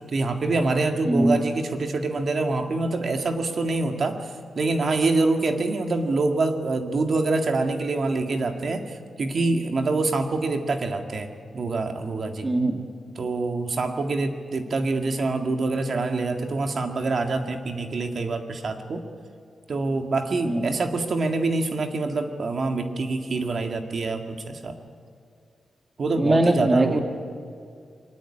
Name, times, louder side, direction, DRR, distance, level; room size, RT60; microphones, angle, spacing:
voice 1, 0.1-12.5 13.2-19.0 19.7-24.8 26.0-27.0, right 3 dB, 50° right, 5 dB, 1.9 m, -25 dB
voice 2, 1.0-1.4 12.4-12.8 20.4-20.8 26.1-27.0, right 1 dB, 20° right, 4 dB, 1.7 m, -21 dB
23.0 x 19.0 x 9.8 m, 2.3 s
wide cardioid pair, 145°, 0 cm